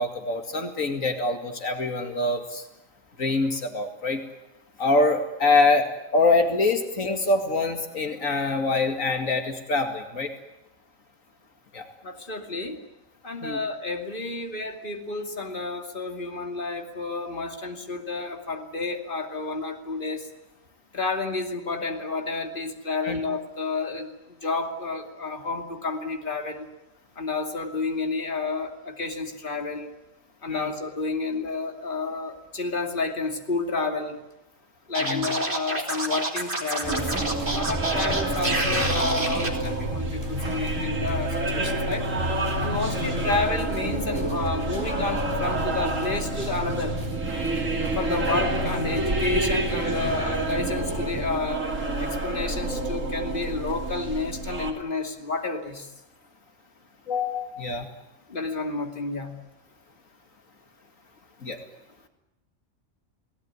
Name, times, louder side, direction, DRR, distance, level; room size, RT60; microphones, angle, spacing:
voice 1, 0.0-2.6 3.2-4.2 4.8-10.3 11.7-11.9 13.4-13.6 23.0-23.2 30.5-30.7 35.0-35.3 57.1-57.9 61.4-61.6, left 3 dB, 80° left, 5 dB, 2.7 m, -24 dB
voice 2, 12.0-12.8 13.2-20.2 20.9-24.1 24.4-26.7 27.2-29.9 30.4-34.2 34.9-37.1 37.5-42.1 42.6-47.0 47.9-51.7 52.0-55.9 58.3-59.3, left 3 dB, 40° left, 4 dB, 2.8 m, -30 dB
Scratching (performance technique), 34.9-39.5, right 2 dB, 40° right, 3.5 m, -28 dB
sound 1, 36.8-51.4, right 2 dB, 15° right, 4.9 m, -36 dB
sound 2, 36.9-54.7, right 2 dB, 70° right, 3.5 m, -28 dB
30.0 x 18.5 x 9.8 m, 0.93 s
omnidirectional pair, 1.4 m